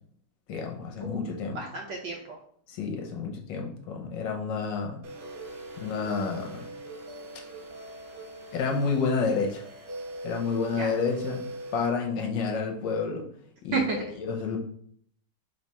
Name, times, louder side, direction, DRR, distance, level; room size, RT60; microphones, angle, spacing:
voice 1, 0.5-1.6 2.7-5.0 5.8-6.6 8.5-9.6 10.2-13.3 13.6-14.6, left 5 dB, 70° left, 2 dB, 1.2 m, -30 dB
voice 2, 1.5-2.4 10.7-10.9 13.7-14.0, right 4 dB, 70° right, 1 dB, 1.3 m, -31 dB
sound 1, 5.0-11.9, right 1 dB, 90° right, 1.8 m, -41 dB
3.5 x 3.2 x 4.1 m, 0.62 s
omnidirectional pair, 2.4 m